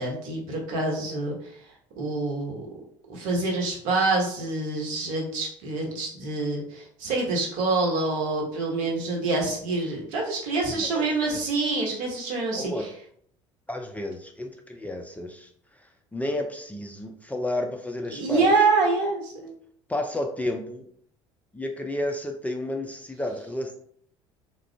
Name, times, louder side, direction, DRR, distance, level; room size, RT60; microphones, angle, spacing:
voice 1, 0.0-1.3 2.0-2.6 3.1-12.7 18.1-19.5, right 3 dB, 60° right, -1 dB, 1.1 m, -26 dB
voice 2, 10.7-11.4 12.5-12.9 13.7-15.5 15.8-18.5 19.9-20.8 21.5-23.8, left 1 dB, 10° left, 3 dB, 0.4 m, -31 dB
3.6 x 2.3 x 3.3 m, 0.64 s
figure-of-eight pair, 60°, 15 cm